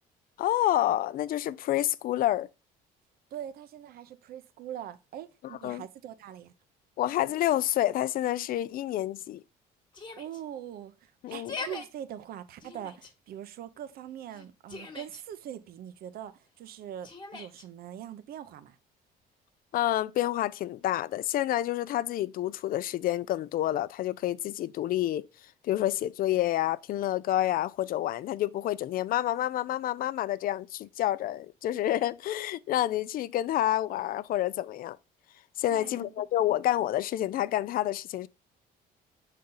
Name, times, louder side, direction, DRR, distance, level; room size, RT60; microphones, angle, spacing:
voice 1, 0.4-2.5 5.6-5.8 7.0-9.4 11.2-11.5 19.7-25.3 25.6-35.0 35.6-38.3, left 13 dB, 60° left, 0.5 m, -28 dB
voice 2, 3.3-6.5 10.2-18.8 35.7-36.1, right 10 dB, 65° right, 0.7 m, -42 dB
Yell, 9.9-10.4 11.3-11.9 12.6-13.1 14.3-15.2 17.0-17.6, left 4 dB, 25° left, 1.3 m, -41 dB
6.5 x 4.2 x 3.8 m
cardioid pair, 110°, 17 cm